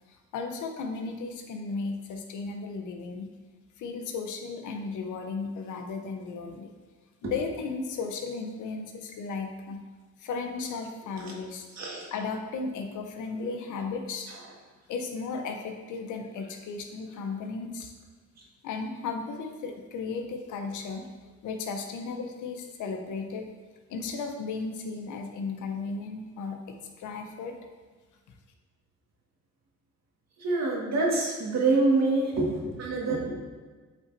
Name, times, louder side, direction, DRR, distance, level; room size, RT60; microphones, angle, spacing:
voice 1, 0.1-3.3 3.8-6.7 7.2-9.8 10.2-11.7 12.1-14.3 14.9-17.9 18.6-23.5 23.9-27.5, left 4 dB, 80° left, 4 dB, 0.9 m, -35 dB
voice 2, 11.7-12.1 30.4-33.3, right 3 dB, 60° right, -2 dB, 1.8 m, -26 dB
8.0 x 5.3 x 2.7 m, 1.4 s
cardioid pair, 90°, 30 cm